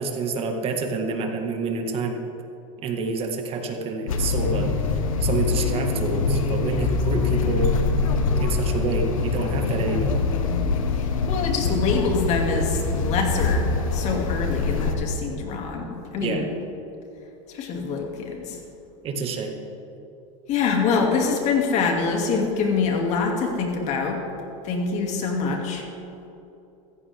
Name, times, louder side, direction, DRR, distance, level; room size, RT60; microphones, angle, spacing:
voice 1, 0.0-2.2 2.8-4.7 5.2-7.7 8.4-10.2 16.2-16.4 19.0-19.6, right 4 dB, 35° right, 3 dB, 1.9 m, -28 dB
sound 1, 4.1-14.9, left 4 dB, 90° left, 1.4 m, -24 dB
voice 2, 11.0-16.5 17.5-18.6 20.5-24.2 24.6-25.8, left 4 dB, 45° left, 1 dB, 2.5 m, -25 dB
15.5 x 14.5 x 3.6 m, 2.9 s
supercardioid pair, 130°, 17 cm